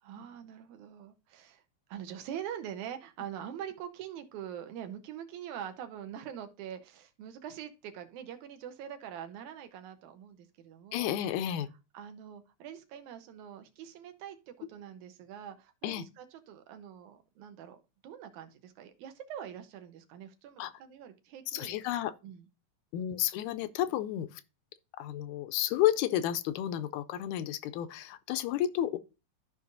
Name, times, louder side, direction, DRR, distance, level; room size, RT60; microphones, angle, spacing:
voice 1, 0.0-1.6 1.9-11.2 11.9-21.8 22.2-22.4, right 9 dB, 80° right, 2.2 m, -44 dB
voice 2, 10.9-11.7 15.8-16.1 20.6-20.7 21.5-22.1 22.9-24.4 25.0-29.0, left 12 dB, 85° left, 1.9 m, -31 dB
13.5 x 5.3 x 2.6 m
omnidirectional pair, 3.4 m